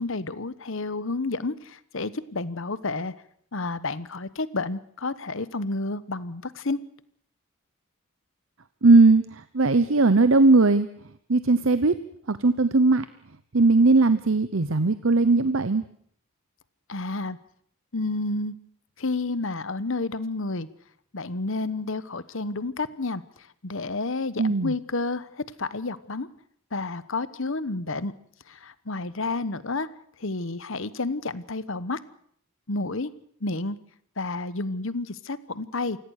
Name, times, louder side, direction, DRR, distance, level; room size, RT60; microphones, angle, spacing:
voice 1, 0.0-3.1 3.5-6.8 16.9-17.4 17.9-18.5 19.0-20.7 21.1-23.2 23.6-26.3 26.7-28.1 28.5-29.9 30.2-32.0 32.7-33.1 33.4-33.8 34.2-36.0, left 3 dB, 60° left, 16 dB, 1.1 m, -30 dB
voice 2, 8.8-9.2 9.5-10.9 11.3-11.9 12.3-13.1 13.5-15.8 24.4-24.7, right 3 dB, 65° right, 12 dB, 0.9 m, -18 dB
28.5 x 17.0 x 6.5 m, 0.64 s
head